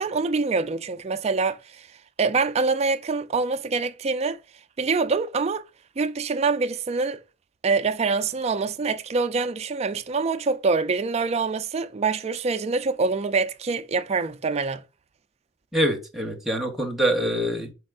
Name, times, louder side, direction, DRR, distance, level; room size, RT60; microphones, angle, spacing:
voice 1, 0.0-1.9 2.2-4.4 4.8-5.6 6.0-7.2 7.6-14.8, right 4 dB, 35° right, 0.4 m, -25 dB
voice 2, 15.7-17.7, equal, ahead, 0.8 m, -25 dB
4.3 x 4.1 x 2.4 m
head